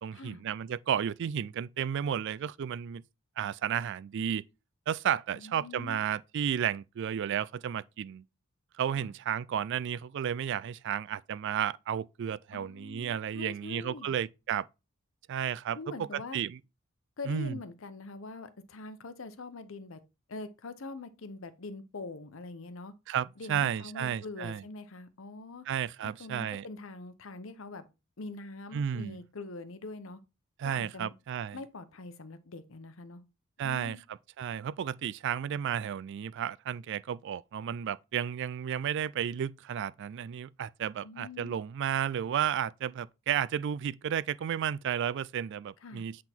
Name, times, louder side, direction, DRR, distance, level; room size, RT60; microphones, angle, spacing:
voice 1, 0.0-3.0 3.4-4.5 4.9-8.2 8.8-14.7 15.3-15.8 16.1-16.6 17.3-17.6 23.1-24.6 25.7-26.6 28.7-29.2 30.6-31.6 33.6-34.0 34.4-46.2, right 9 dB, 60° right, 0.3 m, -32 dB
voice 2, 5.3-6.0 8.9-9.1 12.5-14.1 15.7-16.4 17.2-20.0 20.3-22.9 23.4-25.6 26.0-27.9 28.2-30.2 30.6-31.1 31.5-33.2 33.6-34.0 41.0-41.6 45.8-46.0, left 3 dB, 70° left, 0.8 m, -44 dB
8.0 x 3.7 x 4.4 m
head